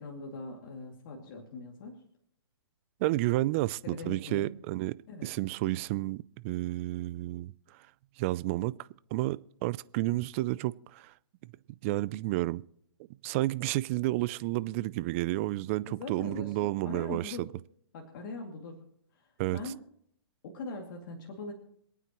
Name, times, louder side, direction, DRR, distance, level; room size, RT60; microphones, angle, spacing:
voice 1, 0.0-2.0 3.8-4.5 5.1-5.3 15.8-17.4 17.9-18.8 19.1-19.8 20.4-21.5, left 3 dB, 45° left, 2.5 m, -41 dB
voice 2, 3.0-5.0 5.2-7.5 8.2-8.7 9.1-11.1 11.8-12.6 13.2-17.5 19.4-19.7, right 18 dB, 30° right, 0.4 m, -31 dB
27.0 x 9.1 x 3.1 m
hypercardioid pair, 145°, 14 cm